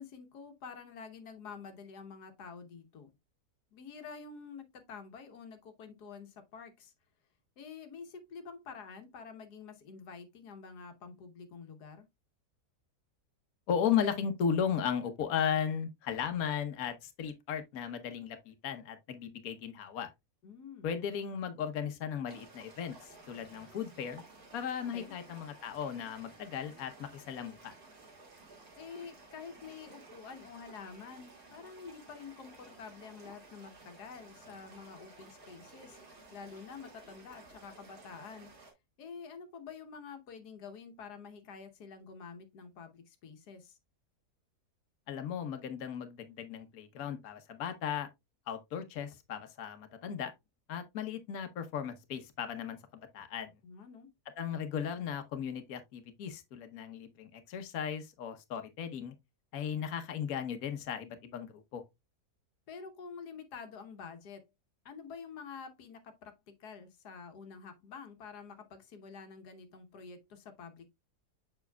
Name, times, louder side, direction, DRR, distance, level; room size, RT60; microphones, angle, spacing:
voice 1, 0.0-3.1 3.7-6.9 7.6-12.1 20.4-20.9 24.9-25.1 28.8-36.0 36.3-38.5 39.0-43.8 53.6-54.1 62.7-64.4 64.8-70.9, left 5 dB, 90° left, 1.6 m, -48 dB
voice 2, 13.7-20.1 20.8-24.2 24.5-27.7 45.1-48.1 48.5-50.3 50.7-52.8 53.1-53.5 54.4-59.1 59.5-61.8, left 8 dB, 65° left, 1.4 m, -36 dB
sound 1, 22.3-38.7, right 3 dB, 65° right, 2.7 m, -55 dB
7.1 x 6.2 x 2.2 m
omnidirectional pair, 1.7 m